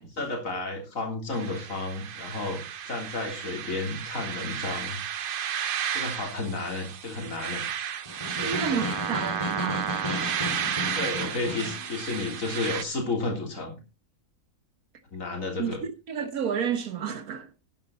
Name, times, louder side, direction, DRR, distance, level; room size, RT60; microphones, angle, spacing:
voice 1, 0.2-5.0 5.9-7.6 8.4-8.8 10.9-13.8 15.1-15.8, left 3 dB, 60° left, 3.9 m, -32 dB
sound 1, 1.3-12.8, right 9 dB, 55° right, 0.6 m, -33 dB
Snare drum, 8.1-11.9, left 2 dB, 20° left, 3.8 m, -34 dB
voice 2, 8.4-10.0 15.6-17.5, right 7 dB, 70° right, 1.5 m, -31 dB
12.0 x 10.0 x 4.0 m
omnidirectional pair, 1.6 m